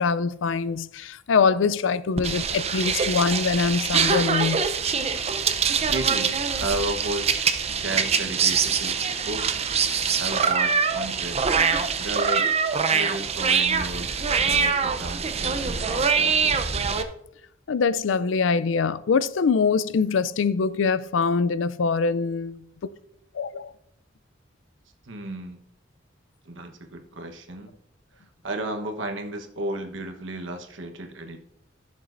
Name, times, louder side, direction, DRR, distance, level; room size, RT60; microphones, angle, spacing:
voice 1, 0.0-4.6 7.7-7.8 17.7-22.9 23.3-23.7, left 5 dB, 90° left, 0.4 m, -24 dB
sound 1, 2.2-17.0, right 6 dB, 35° right, 0.6 m, -24 dB
voice 2, 5.9-9.0 9.2-11.6 12.0-12.5 12.9-16.8 25.0-25.6 26.5-27.7 28.4-31.4, right 1 dB, 80° right, 1.2 m, -34 dB
15.5 x 7.2 x 2.6 m
head